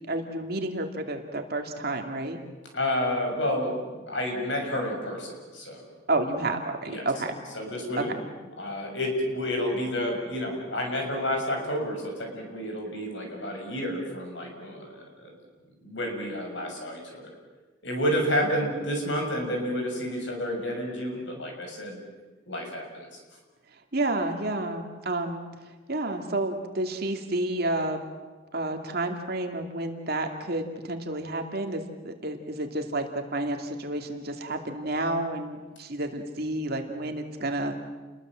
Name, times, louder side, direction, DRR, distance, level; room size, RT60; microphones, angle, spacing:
voice 1, 0.1-2.4 6.1-7.4 8.0-8.1 18.4-18.5 23.9-25.4 25.9-28.0 28.5-37.8, right 2 dB, 50° right, 4 dB, 2.6 m, -30 dB
voice 2, 2.7-5.8 6.9-7.1 7.5-8.1 8.6-15.3 15.8-17.3 17.8-22.0 22.5-23.2, equal, 65° left, 2 dB, 6.7 m, -30 dB
29.5 x 21.0 x 7.7 m, 1.3 s
head